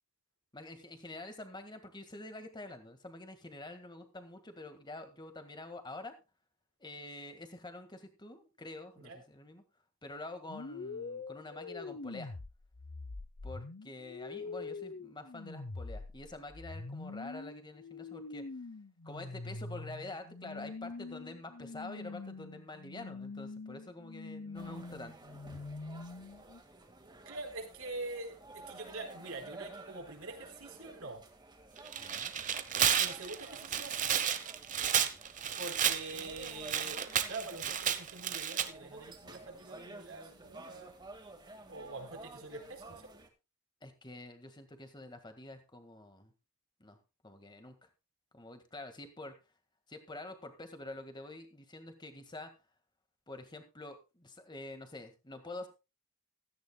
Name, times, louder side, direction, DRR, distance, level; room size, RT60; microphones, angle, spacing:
voice 1, 0.5-6.1 6.8-9.6 10.0-12.3 13.4-18.5 19.0-25.1 32.0-32.3 43.8-46.3 46.8-47.0 47.2-47.8 48.3-49.4 49.9-52.5 53.3-55.7, left 2 dB, 20° left, 7 dB, 1.8 m, -47 dB
sound 1, 10.5-26.6, left 3 dB, 50° left, 0.7 m, -44 dB
sound 2, 24.5-43.3, right 2 dB, 20° right, 1.8 m, -53 dB
voice 2, 27.3-31.2 33.0-34.2 35.6-37.0 37.3-40.9 41.7-43.1, right 3 dB, 70° right, 3 dB, 4.0 m, -44 dB
Tearing, 31.8-38.7, right 9 dB, 35° right, 0.9 m, -32 dB
16.0 x 14.0 x 2.3 m, 0.28 s
head